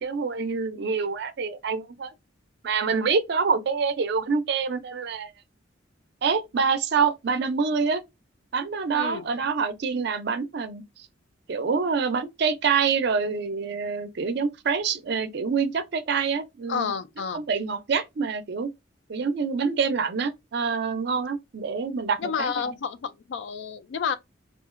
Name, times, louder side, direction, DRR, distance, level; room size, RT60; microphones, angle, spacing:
voice 1, 0.0-2.1 2.6-5.3 6.2-8.0 8.5-10.8 11.5-16.9 17.3-18.7 19.1-22.5, right 5 dB, 60° right, 0.4 m, -26 dB
voice 2, 8.9-9.2 16.7-17.4 22.2-24.2, left 6 dB, 65° left, 0.3 m, -30 dB
2.8 x 2.4 x 2.4 m
head